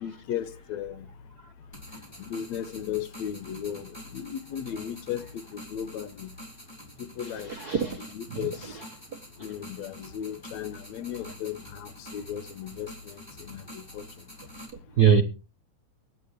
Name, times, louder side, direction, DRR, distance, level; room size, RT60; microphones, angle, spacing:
voice 1, 0.0-1.1 2.2-3.9 4.1-5.3 5.5-6.3 7.2-7.5 7.9-8.6 9.4-13.2 13.5-14.0, left 9 dB, 70° left, 2.2 m, -35 dB
sound 1, 1.7-14.7, equal, 10° left, 3.7 m, -47 dB
voice 2, 7.5-8.4 15.0-15.2, right 7 dB, 55° right, 1.0 m, -22 dB
23.0 x 10.0 x 3.2 m
omnidirectional pair, 3.3 m